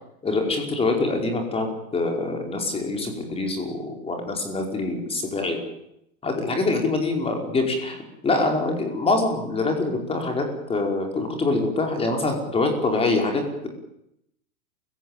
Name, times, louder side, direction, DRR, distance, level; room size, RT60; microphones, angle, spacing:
voice 1, 0.2-5.6 6.2-8.0 8.2-13.7, left 3 dB, 15° left, 3 dB, 5.2 m, -25 dB
28.0 x 16.5 x 9.2 m, 0.79 s
supercardioid pair, 145°, 42 cm